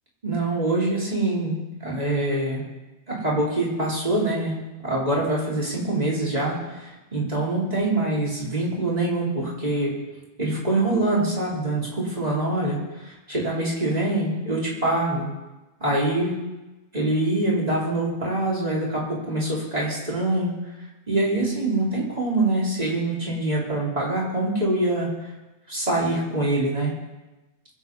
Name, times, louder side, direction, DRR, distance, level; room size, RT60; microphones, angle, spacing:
voice 1, 0.2-1.6 1.8-2.6 3.1-4.5 4.8-9.9 10.4-15.3 15.8-16.4 16.9-20.5 21.1-25.3 25.7-26.9, right 2 dB, 35° right, -5 dB, 4.2 m, -24 dB
23.5 x 8.5 x 5.5 m, 1.1 s
omnidirectional pair, 1.2 m